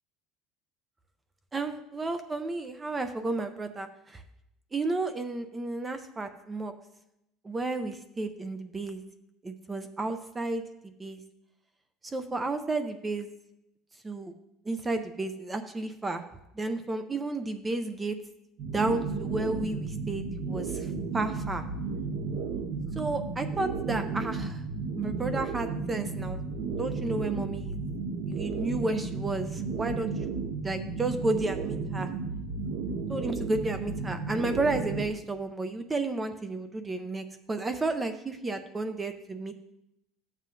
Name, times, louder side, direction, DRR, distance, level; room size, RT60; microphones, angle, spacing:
voice 1, 1.5-4.2 4.7-6.7 7.4-9.0 9.4-11.2 12.0-13.3 14.0-14.3 14.7-16.2 16.6-18.2 18.7-21.6 23.0-24.6 25.0-26.4 26.8-27.8 28.3-30.1 30.6-32.1 33.1-39.5, right 2 dB, 15° right, 8 dB, 0.4 m, -32 dB
sound 1, 18.6-35.1, right 4 dB, 50° right, 0.8 m, -33 dB
12.5 x 7.4 x 2.5 m, 0.84 s
cardioid pair, 165°, 0 cm